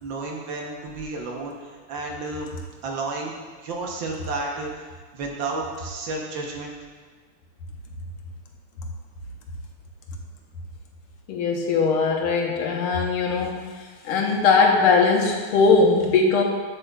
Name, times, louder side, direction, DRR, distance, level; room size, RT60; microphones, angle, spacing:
voice 1, 0.0-2.5 2.8-6.7, right 3 dB, 65° right, 0 dB, 1.6 m, -32 dB
voice 2, 11.3-13.6 14.1-16.4, left 4 dB, 85° left, 1 dB, 1.7 m, -20 dB
7.8 x 7.6 x 2.3 m, 1.5 s
omnidirectional pair, 2.3 m